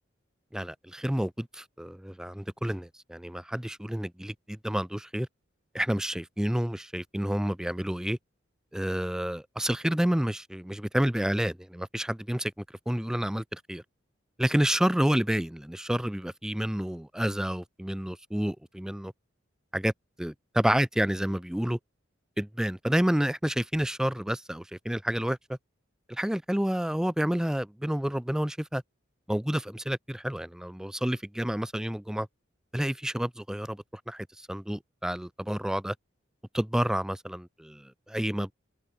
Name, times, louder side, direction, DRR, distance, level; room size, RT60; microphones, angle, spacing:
voice 1, 0.5-5.3 5.7-8.2 8.7-12.5 12.9-13.8 14.4-19.1 19.7-19.9 20.2-21.8 22.4-25.6 26.1-28.8 29.3-32.3 32.7-35.9 36.5-38.5, equal, 5° right, 0.4 m, -29 dB
head